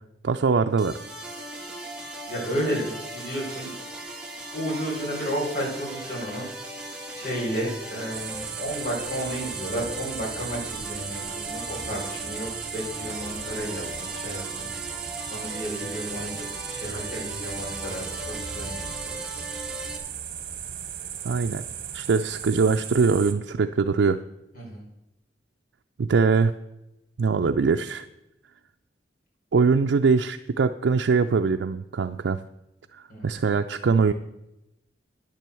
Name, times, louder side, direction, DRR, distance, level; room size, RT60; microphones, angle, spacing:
voice 1, 0.2-1.0 21.2-21.6 21.9-24.2 26.0-26.5 27.2-28.1 29.5-32.4 32.9-34.1, right 5 dB, 90° right, 5 dB, 0.4 m, -22 dB
sound 1, 0.8-20.0, right 1 dB, 5° right, 1.8 m, -38 dB
voice 2, 2.3-3.7 4.5-6.5 7.1-14.7 15.3-16.4 16.7-18.9 24.5-24.8 33.1-33.2, equal, 55° left, -4 dB, 4.8 m, -32 dB
sound 2, 8.1-23.3, right 9 dB, 55° right, 1.1 m, -36 dB
10.0 x 7.6 x 6.9 m, 0.91 s
head